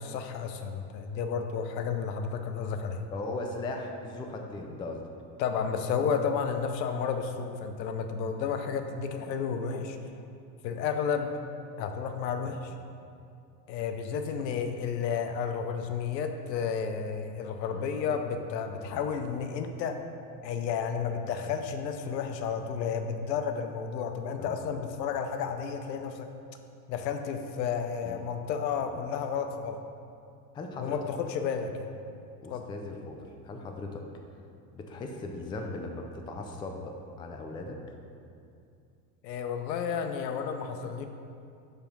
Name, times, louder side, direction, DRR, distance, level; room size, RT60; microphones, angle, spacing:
voice 1, 0.0-3.0 5.4-10.0 10.6-11.3 11.8-12.7 13.7-20.0 20.4-26.3 26.9-29.8 30.8-31.9 32.5-32.6 39.2-41.1, left 6 dB, 80° left, 6 dB, 0.7 m, -32 dB
voice 2, 3.1-5.1 17.7-17.9 18.9-19.1 24.4-24.8 28.0-28.2 28.9-29.0 30.5-31.0 32.4-34.0 34.7-37.8, left 2 dB, 10° left, 3 dB, 0.3 m, -38 dB
6.9 x 3.4 x 5.3 m, 2.5 s
hypercardioid pair, 85°, 50 cm